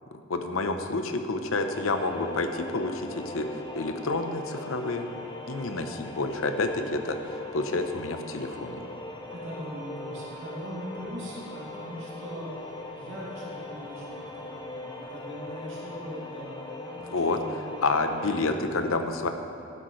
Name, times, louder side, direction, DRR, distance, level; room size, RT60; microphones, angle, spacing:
voice 1, 0.1-5.1 5.5-7.2 7.5-8.8 17.1-17.4 17.8-19.3, left 3 dB, 90° left, 7 dB, 0.7 m, -29 dB
sound 1, 1.6-18.6, left 2 dB, 20° left, 0.6 m, -40 dB
voice 2, 9.3-17.9 18.3-18.7, equal, 70° right, -6 dB, 2.5 m, -41 dB
12.0 x 10.0 x 3.2 m, 2.6 s
head